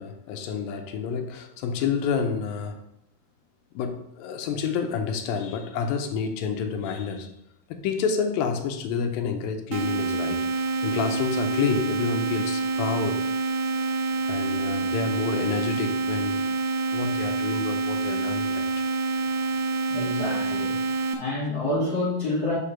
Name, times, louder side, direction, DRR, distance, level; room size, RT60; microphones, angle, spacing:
voice 1, 0.0-2.8 3.7-7.3 7.7-13.2 14.3-16.5 16.9-18.7, left 6 dB, 80° left, 5 dB, 2.3 m, -29 dB
sound 1, 9.7-21.1, right 3 dB, 80° right, 1.9 m, -27 dB
voice 2, 19.9-20.8 21.2-22.5, left 2 dB, 50° left, -6 dB, 1.2 m, -28 dB
5.3 x 5.0 x 5.7 m, 0.81 s
omnidirectional pair, 4.2 m